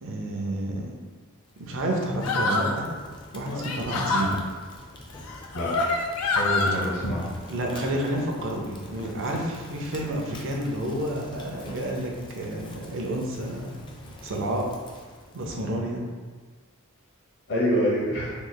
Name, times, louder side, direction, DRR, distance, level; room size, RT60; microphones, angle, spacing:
voice 1, 0.0-1.0 1.6-2.9 3.3-4.4 7.5-13.9 14.2-14.7 15.3-16.0, right 1 dB, 60° right, 0 dB, 0.6 m, -30 dB
Fire, 1.4-15.8, left 1 dB, 20° left, 0.4 m, -46 dB
sound 1, 2.2-2.8 3.5-4.3 5.2-6.8, left 3 dB, 85° left, 0.4 m, -26 dB
voice 2, 6.3-7.3 17.5-18.3, equal, 55° left, -5 dB, 1.0 m, -26 dB
3.1 x 2.3 x 3.9 m, 1.5 s
head